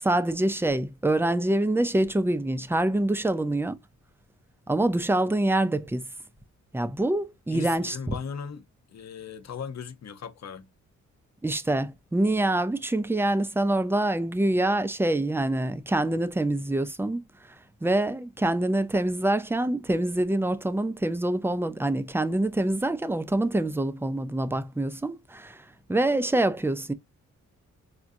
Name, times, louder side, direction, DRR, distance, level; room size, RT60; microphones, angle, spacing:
voice 1, 0.0-3.8 4.7-6.0 6.7-8.2 11.4-17.2 17.8-26.9, right 1 dB, 5° right, 0.6 m, -25 dB
voice 2, 7.5-8.6 8.9-10.7, left 7 dB, 60° left, 0.9 m, -37 dB
5.9 x 2.4 x 2.6 m
cardioid pair, 85°, 31 cm